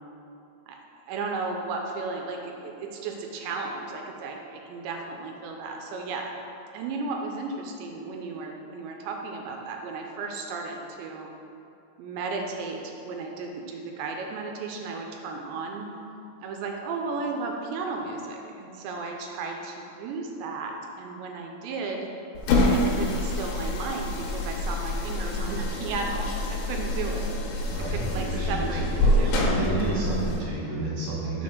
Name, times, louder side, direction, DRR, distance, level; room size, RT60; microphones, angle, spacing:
voice 1, 0.7-6.3 6.7-11.3 12.0-15.9 16.4-22.1 22.7-27.3 27.9-28.9 29.2-29.4 29.7-30.2, right 4 dB, 80° right, 2 dB, 2.6 m, -34 dB
sound 1, 22.4-30.4, left 1 dB, 75° left, 3.0 m, -26 dB
voice 2, 27.7-31.4, right 2 dB, 65° right, -8 dB, 2.8 m, -31 dB
6.5 x 4.4 x 6.0 m, 2.8 s
omnidirectional pair, 5.5 m